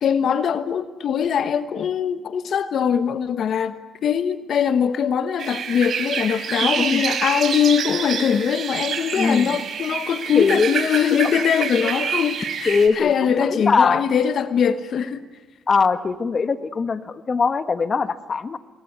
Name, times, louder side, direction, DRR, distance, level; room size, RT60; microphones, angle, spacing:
voice 1, 0.0-3.8 4.0-15.3, left 8 dB, 60° left, 1.2 m, -22 dB
sound 1, 5.4-12.9, right 7 dB, 60° right, 5.2 m, -27 dB
voice 2, 6.6-7.0 9.2-9.6 10.3-10.7 11.8-11.9 12.7-14.0 15.7-18.6, left 5 dB, 40° left, 1.4 m, -21 dB
27.5 x 22.0 x 9.5 m
cardioid pair, 90°, 0 cm